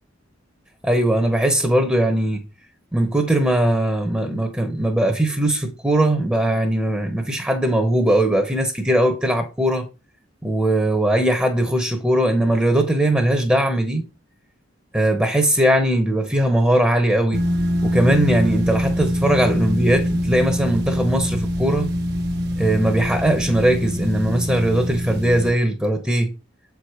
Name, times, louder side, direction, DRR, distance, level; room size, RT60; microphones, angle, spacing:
voice 1, 0.8-2.4 2.9-9.9 10.4-14.1 14.9-17.4 17.8-21.9 22.6-26.3, right 1 dB, 10° right, 1.0 m, -20 dB
sound 1, 17.3-25.5, equal, 55° right, 1.2 m, -24 dB
7.3 x 4.7 x 4.9 m
head